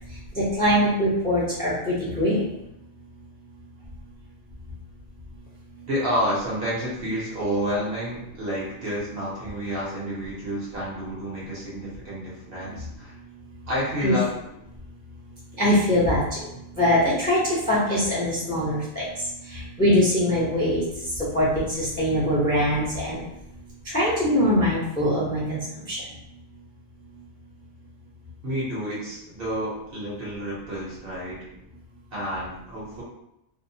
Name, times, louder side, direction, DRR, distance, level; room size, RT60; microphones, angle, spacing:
voice 1, 0.3-2.4 14.0-14.1 15.6-16.2 16.7-17.4 17.7-19.0 19.5-20.8 21.3-23.2 23.9-25.6 25.9-26.0, equal, 10° left, -8 dB, 0.5 m, -22 dB
voice 2, 5.9-13.1 13.7-14.3 28.4-31.4 32.1-33.0, equal, 50° right, -7 dB, 0.8 m, -29 dB
2.6 x 2.0 x 2.6 m, 0.84 s
omnidirectional pair, 1.5 m